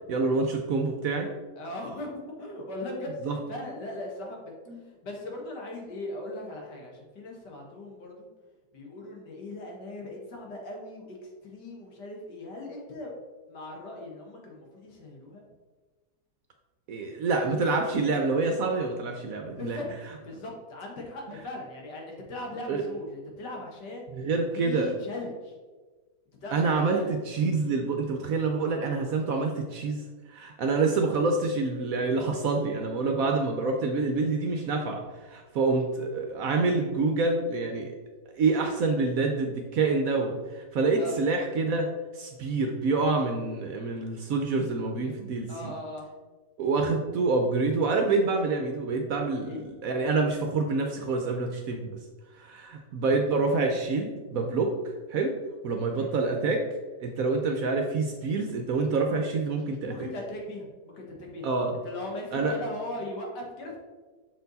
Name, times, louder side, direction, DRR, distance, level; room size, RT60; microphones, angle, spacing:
voice 1, 0.1-1.3 3.2-3.4 4.7-4.8 16.9-19.8 22.7-22.8 24.1-24.9 26.5-30.0 30.3-38.0 38.4-41.9 42.1-45.7 46.6-51.9 52.3-54.7 55.1-55.3 55.6-56.6 57.0-60.1 61.4-61.7 62.3-62.5, right 3 dB, 65° right, 3 dB, 0.9 m, -27 dB
voice 2, 1.6-2.1 2.4-4.4 4.8-8.3 8.7-13.1 13.5-15.4 19.6-19.8 20.2-24.1 24.5-25.6 26.4-27.1 41.0-41.2 45.5-46.1 49.4-49.6 56.0-56.1 59.8-63.8, left 1 dB, 70° left, 0 dB, 1.9 m, -39 dB
6.4 x 4.4 x 4.0 m, 1.3 s
omnidirectional pair, 1.9 m